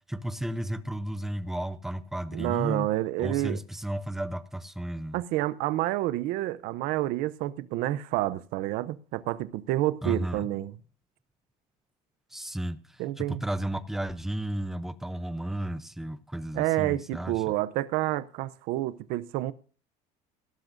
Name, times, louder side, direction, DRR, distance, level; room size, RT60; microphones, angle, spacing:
voice 1, 0.1-2.9 3.2-5.2 10.0-10.5 12.3-17.5, right 1 dB, ahead, 0.5 m, -33 dB
voice 2, 2.3-3.6 5.1-10.8 13.0-13.4 16.5-19.5, right 16 dB, 60° right, 0.6 m, -29 dB
17.5 x 12.0 x 2.6 m
cardioid pair, 150°, 16 cm